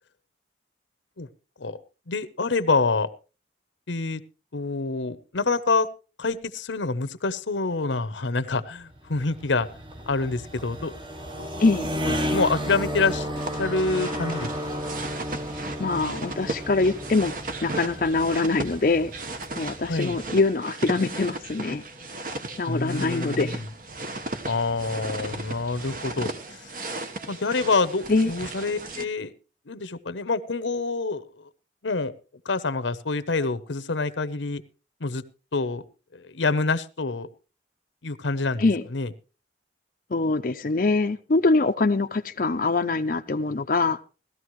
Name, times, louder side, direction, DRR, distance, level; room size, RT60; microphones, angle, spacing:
voice 1, 2.1-3.1 3.9-4.2 4.5-5.9 6.2-9.7 10.1-10.9 11.4-11.5 12.0-13.3 13.6-14.8 19.9-20.2 22.7-23.7 24.5-26.3 26.6-26.7 27.3-29.3 29.7-31.5 31.8-32.1 32.4-34.6 35.0-35.2 35.5-35.8 36.1-37.3 38.0-38.6 38.9-39.1, left 3 dB, 85° left, 12 dB, 0.9 m, -26 dB
sound 1, 8.8-20.4, equal, 25° right, 1.1 m, -33 dB
voice 2, 11.6-11.9 15.8-17.3 17.6-19.1 19.6-21.9 22.6-23.6 28.1-28.3 38.6-38.8 40.1-44.0, left 3 dB, 50° left, 5 dB, 0.5 m, -23 dB
sound 2, 13.4-29.0, right 2 dB, 50° right, 1.2 m, -36 dB
17.5 x 13.5 x 3.1 m, 0.33 s
head